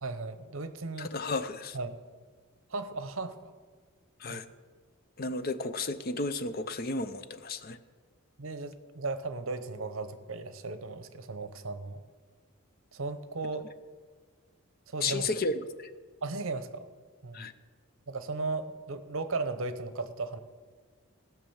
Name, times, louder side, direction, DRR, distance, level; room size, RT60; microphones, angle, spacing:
voice 1, 0.0-1.1 1.7-2.0 2.7-3.5 4.3-4.4 5.2-5.3 8.4-12.0 12.9-13.7 14.9-15.3 16.2-16.9 17.2-17.5 18.1-20.4, right 3 dB, 65° right, 11 dB, 0.8 m, -36 dB
voice 2, 1.0-1.8 4.2-4.4 5.2-7.8 15.0-15.5 15.8-15.9 17.3-17.5, left 3 dB, 45° left, 12 dB, 0.6 m, -33 dB
16.0 x 6.1 x 7.1 m, 1.5 s
head